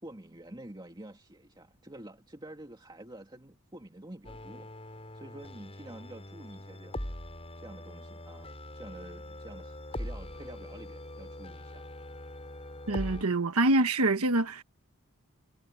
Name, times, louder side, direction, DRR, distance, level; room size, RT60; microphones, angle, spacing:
voice 1, 0.0-7.1 7.6-11.9, right 1 dB, 20° right, 2.4 m, -48 dB
sound 1, 4.2-13.2, left 1 dB, 25° left, 5.3 m, -42 dB
voice 2, 12.9-14.6, right 2 dB, 85° right, 1.3 m, -25 dB
head